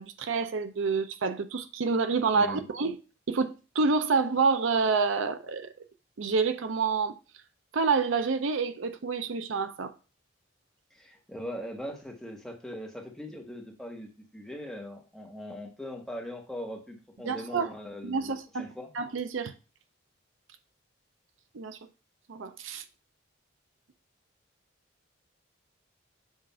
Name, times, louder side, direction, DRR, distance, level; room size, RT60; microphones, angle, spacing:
voice 1, 0.0-3.0 3.3-5.7 6.2-7.2 7.7-9.9 17.3-17.7 18.0-18.6 19.0-19.5 21.5-21.8 22.3-22.8, right 4 dB, 75° right, 0.5 m, -28 dB
voice 2, 2.3-2.7 10.9-18.9, equal, ahead, 1.0 m, -40 dB
7.1 x 2.5 x 5.4 m
head